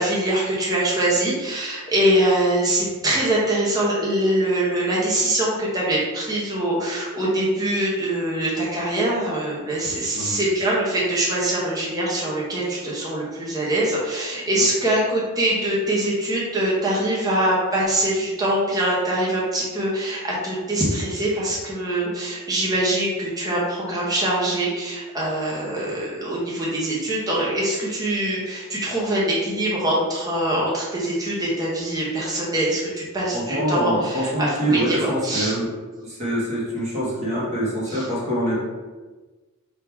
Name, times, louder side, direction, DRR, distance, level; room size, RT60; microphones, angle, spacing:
voice 1, 0.0-35.5 37.9-38.0, right 1 dB, 15° right, -6 dB, 0.8 m, -23 dB
voice 2, 33.3-35.7 36.0-38.5, right 1 dB, 30° right, -6 dB, 1.3 m, -25 dB
3.5 x 2.8 x 4.4 m, 1.3 s
head